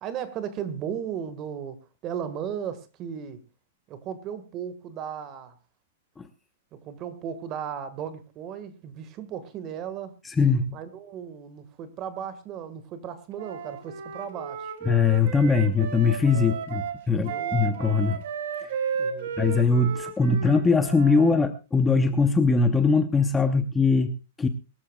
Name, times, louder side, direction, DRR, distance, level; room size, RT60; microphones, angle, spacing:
voice 1, 0.0-3.4 3.9-5.6 6.7-10.2 10.7-14.7 16.3-16.6 17.1-17.7 19.0-19.4, right 8 dB, 25° right, 1.6 m, -36 dB
voice 2, 10.2-10.8 14.9-18.2 19.4-24.5, left 4 dB, 10° left, 0.8 m, -21 dB
Wind instrument woodwind instrument, 13.4-21.4, right 7 dB, 55° right, 2.6 m, -34 dB
23.0 x 13.5 x 2.3 m
supercardioid pair, 165°, 0 cm